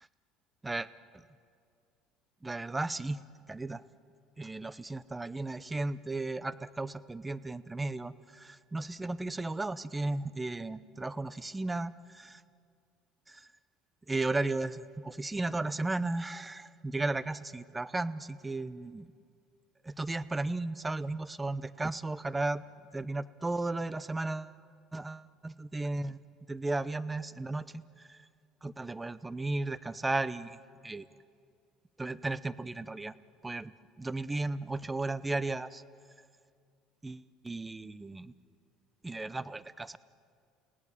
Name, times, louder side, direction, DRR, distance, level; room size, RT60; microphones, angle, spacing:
voice 1, 2.4-3.2 3.5-3.8 4.4-12.4 13.3-13.5 14.1-19.1 19.8-22.6 22.9-24.5 24.9-26.2 26.5-28.3 28.6-31.1 32.0-33.1 33.4-33.7 34.0-35.8 37.0-38.3 39.0-40.0, right 2 dB, 15° right, 17 dB, 0.8 m, -35 dB
30.0 x 17.5 x 8.9 m, 2.2 s
supercardioid pair, 90°, 0 cm